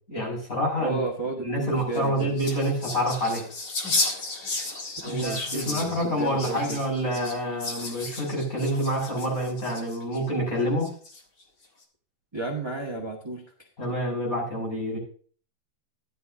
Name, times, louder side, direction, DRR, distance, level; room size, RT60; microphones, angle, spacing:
voice 1, 0.1-1.0 1.4-3.5 5.0-10.9 13.8-15.0, equal, 40° left, -3 dB, 6.3 m, -27 dB
voice 2, 0.8-2.4 5.0-6.8 12.3-13.4, right 3 dB, 15° right, 0 dB, 1.1 m, -32 dB
sound 1, 1.8-10.2 10.8-11.4, left 3 dB, 55° left, 2.3 m, -33 dB
13.5 x 11.0 x 2.6 m, 0.44 s
omnidirectional pair, 2.4 m